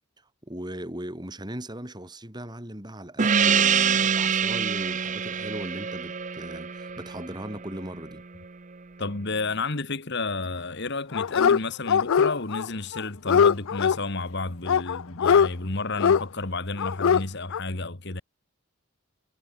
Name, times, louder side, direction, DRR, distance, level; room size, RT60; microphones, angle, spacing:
voice 1, 0.4-8.2, right 1 dB, 20° right, 3.7 m, -38 dB
Gong, 3.2-8.2, right 6 dB, 35° right, 0.7 m, -25 dB
voice 2, 9.0-18.2, left 3 dB, 55° left, 1.9 m, -31 dB
Dog, 11.1-11.6 11.9-12.7 12.9-14.0 14.7-15.5 16.0-16.2 16.8-17.2 17.5-17.6, left 7 dB, 70° left, 0.4 m, -21 dB
head